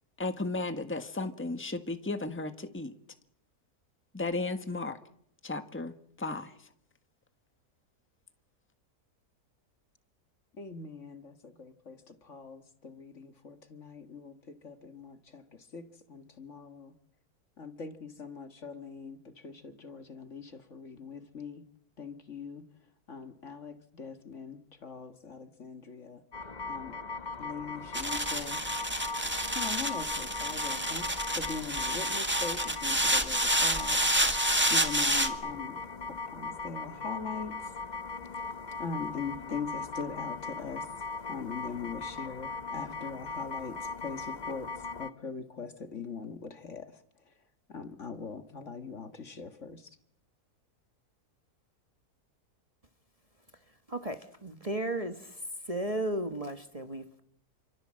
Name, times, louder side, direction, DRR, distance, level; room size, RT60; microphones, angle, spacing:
voice 1, 0.2-2.9 4.1-5.0 5.4-6.5, left 2 dB, 10° left, 8 dB, 1.5 m, -34 dB
voice 2, 10.6-16.9 17.6-21.6 22.0-22.6 23.1-26.2 26.7-26.9 27.4-28.6 29.5-31.1 31.3-34.0 34.7-35.8 36.1-37.6 38.3-38.4 38.8-47.0 47.7-50.0, left 5 dB, 50° left, 8 dB, 2.0 m, -41 dB
sound 1, 26.3-45.1, left 3 dB, 30° left, 1.4 m, -39 dB
sound 2, 27.9-35.3, right 1 dB, 5° right, 1.8 m, -29 dB
voice 3, 53.9-57.2, right 1 dB, 25° right, 7 dB, 1.4 m, -35 dB
28.5 x 25.5 x 7.6 m, 0.70 s
omnidirectional pair, 1.6 m